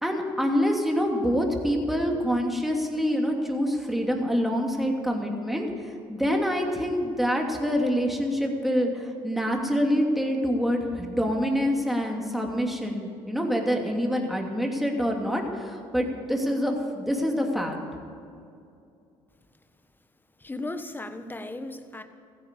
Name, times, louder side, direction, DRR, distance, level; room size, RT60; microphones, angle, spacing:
voice 1, 0.0-17.8, equal, ahead, 1 dB, 2.8 m, -26 dB
voice 2, 20.4-22.0, left 2 dB, 15° left, 9 dB, 1.3 m, -36 dB
15.5 x 10.0 x 8.4 m, 2.5 s
supercardioid pair, 70°, 12 cm